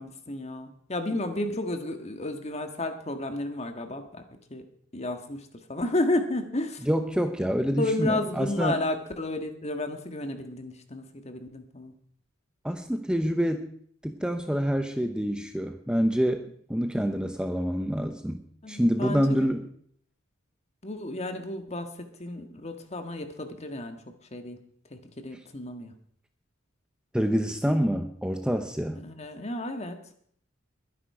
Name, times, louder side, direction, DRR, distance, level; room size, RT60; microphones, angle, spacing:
voice 1, 0.0-4.2 4.5-4.6 4.9-6.9 7.8-11.9 18.6-19.6 20.8-21.9 22.2-24.0 24.3-24.6 24.9-25.9 29.0-30.0, left 2 dB, 35° left, 7 dB, 1.7 m, -32 dB
voice 2, 6.8-8.8 12.6-13.7 14.0-18.4 18.7-19.6 27.1-29.0, equal, 5° right, 7 dB, 0.8 m, -27 dB
21.5 x 10.0 x 4.9 m, 0.64 s
head